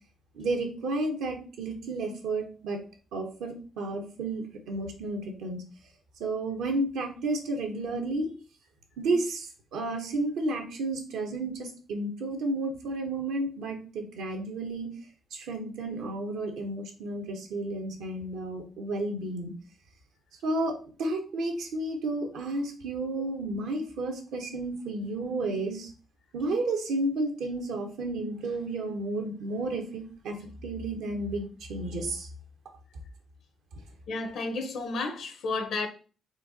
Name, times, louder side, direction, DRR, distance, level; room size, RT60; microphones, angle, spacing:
voice 1, 0.3-2.8 3.1-5.6 6.2-8.3 9.0-14.9 15.3-19.5 20.4-25.9 26.3-30.4 30.6-32.3, right 2 dB, 85° right, 1.1 m, -32 dB
voice 2, 34.1-35.9, left 3 dB, 75° left, 1.0 m, -32 dB
4.5 x 2.6 x 4.1 m
cardioid pair, 70°, 0 cm